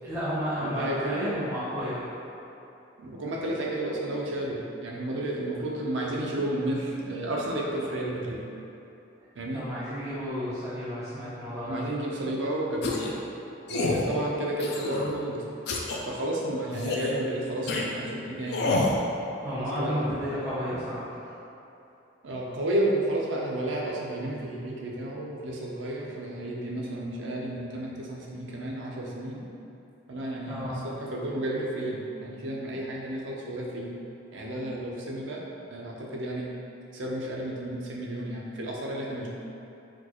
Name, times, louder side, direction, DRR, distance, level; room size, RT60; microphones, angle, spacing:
voice 1, 0.0-2.0 9.5-11.8 19.4-21.2 30.5-30.8, equal, 15° right, -13 dB, 0.6 m, -32 dB
voice 2, 0.6-1.4 3.0-8.4 9.4-9.6 11.7-13.0 13.7-15.4 16.1-18.8 19.6-20.1 22.2-29.4 30.1-33.9 34.3-35.4 35.7-36.5 36.9-39.3, right 1 dB, 85° right, -3 dB, 0.6 m, -32 dB
sound 1, 12.8-13.2 13.7-14.1 14.6-15.1 15.7-16.0 16.7-17.1 17.7-17.9 18.5-19.0, left 3 dB, 60° left, 0.4 m, -28 dB
4.4 x 2.4 x 2.9 m, 3.0 s
head